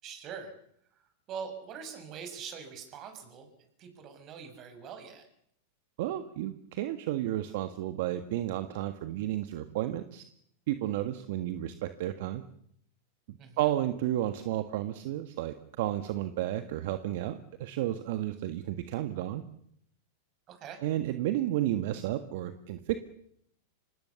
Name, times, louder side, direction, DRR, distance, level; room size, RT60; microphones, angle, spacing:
voice 1, 0.0-0.5 1.3-3.5 3.8-5.3 13.4-13.7 20.5-20.8, right 6 dB, 40° right, 7 dB, 6.5 m, -43 dB
voice 2, 6.0-10.2 10.7-12.4 13.3-19.4 20.8-23.0, right 13 dB, 65° right, 10 dB, 1.6 m, -32 dB
26.0 x 19.5 x 7.1 m, 0.70 s
hypercardioid pair, 120°, 0 cm